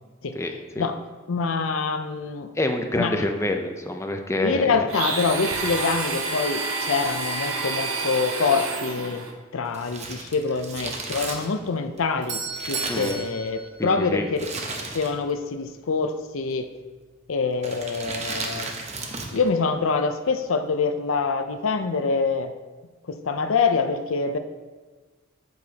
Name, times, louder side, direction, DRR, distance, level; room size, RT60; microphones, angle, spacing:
voice 1, 0.3-0.9 2.6-4.8 12.9-13.2 13.8-14.3, left 1 dB, 15° left, 5 dB, 0.6 m, -27 dB
voice 2, 1.3-2.5 3.0-3.1 4.4-9.3 9.5-14.5 14.9-16.7 17.3-18.7 19.3-22.5 23.1-24.4, left 4 dB, 85° left, 8 dB, 0.6 m, -25 dB
Domestic sounds home sounds, 4.9-9.3, right 3 dB, 80° right, 1.1 m, -29 dB
Crumpling crinkling, 9.7-13.7 14.3-15.4 15.6-15.7 16.6-16.9 17.6-19.5 19.7-19.8, right 3 dB, 35° right, 0.9 m, -34 dB
Doorbell, 11.9-14.7, right 4 dB, 60° right, 1.3 m, -35 dB
8.4 x 8.2 x 2.9 m, 1.3 s
head